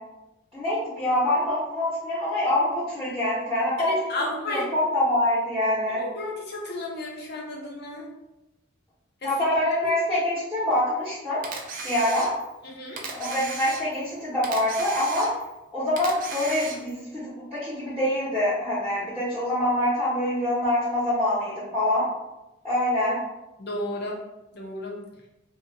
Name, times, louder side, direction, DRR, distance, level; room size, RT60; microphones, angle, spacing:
voice 1, 0.5-3.9 4.5-6.0 9.2-11.4 11.8-12.3 13.2-15.3 15.7-17.2 17.5-22.1 22.6-23.2, left 1 dB, 5° left, -10 dB, 0.7 m, -25 dB
voice 2, 3.8-4.7 6.0-8.1 9.2-9.3 12.6-13.0 23.6-24.2 24.5-24.9, left 1 dB, 50° left, -1 dB, 0.6 m, -32 dB
Camera, 11.4-12.6 13.0-14.1 14.4-15.6 16.0-17.0, right 4 dB, 40° right, 0.3 m, -36 dB
2.7 x 2.1 x 2.5 m, 0.97 s
head